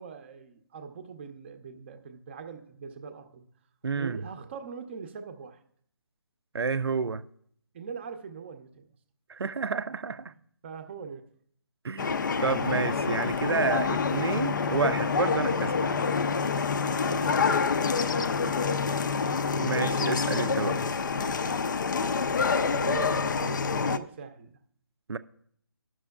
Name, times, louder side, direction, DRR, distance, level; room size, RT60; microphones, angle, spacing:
voice 1, 0.0-3.5 3.9-5.6 7.7-8.9 10.6-11.3 16.8-19.2 22.6-24.6, right 5 dB, 25° right, 0.6 m, -42 dB
voice 2, 3.8-4.2 6.5-7.2 9.3-10.3 11.8-15.9 19.6-20.8 25.1-25.2, right 5 dB, 75° right, 0.5 m, -30 dB
sound 1, 12.0-24.0, left 5 dB, 50° left, 0.4 m, -27 dB
18.0 x 6.1 x 2.3 m
figure-of-eight pair, 150°, 13 cm